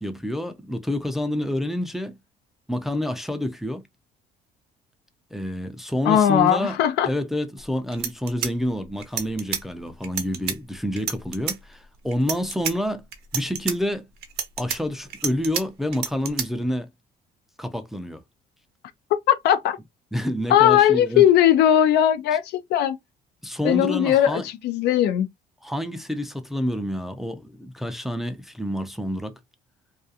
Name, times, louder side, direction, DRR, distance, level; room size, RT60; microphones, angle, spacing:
voice 1, 0.0-2.2 2.7-3.8 5.3-6.8 7.0-13.1 13.3-14.1 14.6-16.9 17.6-18.2 20.1-21.3 23.4-24.4 25.6-29.4, left 1 dB, ahead, 0.4 m, -28 dB
voice 2, 6.1-7.1 19.3-19.8 20.5-22.4 22.7-23.0 23.6-25.3, left 10 dB, 75° left, 0.5 m, -18 dB
sound 1, 7.6-7.7 7.9-9.6 10.0-10.6 11.0-11.6 12.1-12.7 13.1-13.8 14.2-15.6 15.9-16.5, right 8 dB, 70° right, 0.6 m, -29 dB
2.4 x 2.3 x 2.6 m
cardioid pair, 110°, 17 cm